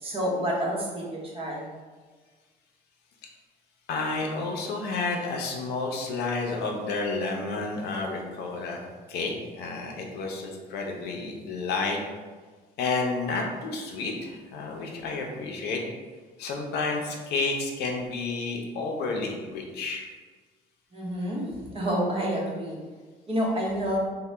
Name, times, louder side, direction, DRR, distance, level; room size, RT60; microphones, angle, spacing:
voice 1, 0.0-1.7 20.9-22.8 23.3-24.0, equal, 35° right, -3 dB, 0.8 m, -29 dB
voice 2, 3.9-8.8 9.1-12.0 12.8-15.8 16.4-20.0, left 3 dB, 75° left, 1 dB, 0.5 m, -30 dB
2.7 x 2.1 x 3.2 m, 1.4 s
cardioid pair, 110°, 17 cm